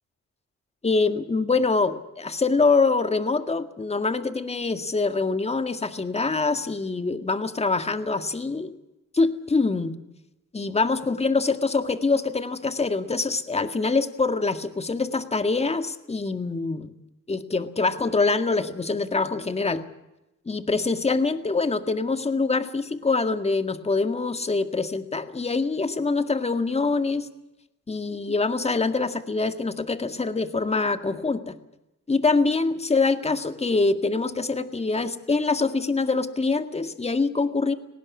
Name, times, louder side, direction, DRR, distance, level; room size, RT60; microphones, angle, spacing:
voice 1, 0.8-8.7 9.1-9.9 10.5-16.9 17.3-19.8 20.5-27.3 27.9-31.5 32.1-37.7, left 3 dB, 20° left, 9 dB, 1.9 m, -24 dB
19.0 x 18.0 x 9.6 m, 0.92 s
cardioid pair, 90°, 30 cm